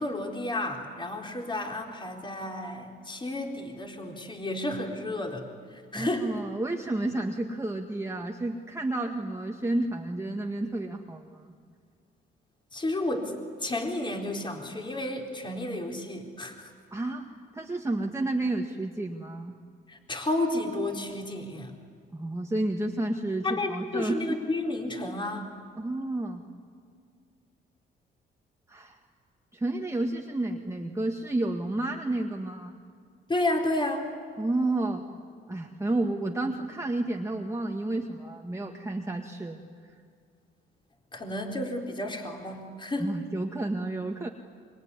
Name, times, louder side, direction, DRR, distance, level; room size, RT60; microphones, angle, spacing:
voice 1, 0.0-6.3 12.7-13.4 13.6-16.7 19.9-21.7 23.4-25.5 33.3-34.1 41.1-43.1, left 1 dB, 25° left, 2 dB, 4.1 m, -31 dB
voice 2, 5.9-11.5 16.9-17.3 17.5-19.6 22.1-24.4 25.8-26.4 28.7-29.0 29.5-32.8 34.4-35.0 35.5-40.0 43.0-44.3, right 2 dB, 15° right, 1 dB, 1.9 m, -31 dB
26.0 x 23.0 x 9.7 m, 2.2 s
cardioid pair, 90°, 20 cm